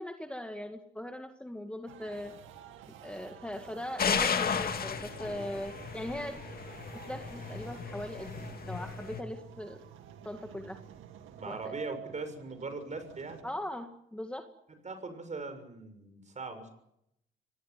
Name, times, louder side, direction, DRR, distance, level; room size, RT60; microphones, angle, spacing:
voice 1, 0.0-2.3 3.0-6.4 7.0-9.8 10.2-10.8 11.5-11.8 13.4-14.5, left 1 dB, 5° left, 5 dB, 2.0 m, -40 dB
sound 1, 1.9-13.4, right 10 dB, 90° right, 2.4 m, -50 dB
sound 2, 4.0-9.2, left 6 dB, 50° left, 2.2 m, -34 dB
voice 2, 11.3-13.5 14.8-16.7, right 3 dB, 35° right, 9 dB, 6.7 m, -40 dB
24.5 x 18.5 x 9.5 m, 0.80 s
cardioid pair, 90°, 20 cm